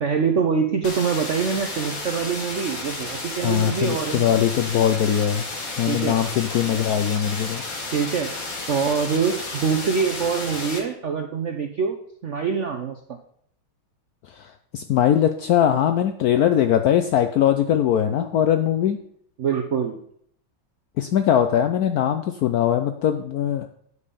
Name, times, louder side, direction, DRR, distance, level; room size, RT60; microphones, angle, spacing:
voice 1, 0.0-4.6 5.9-6.2 7.9-8.3 8.7-13.2 19.4-20.0, right 6 dB, 85° right, 6 dB, 0.6 m, -25 dB
sound 1, 0.8-10.8, left 2 dB, 45° left, 1.9 m, -32 dB
voice 2, 3.4-5.4 5.8-7.6 14.4-19.0 21.0-23.7, left 10 dB, 80° left, 8 dB, 0.8 m, -21 dB
9.9 x 5.4 x 6.7 m, 0.66 s
omnidirectional pair, 2.3 m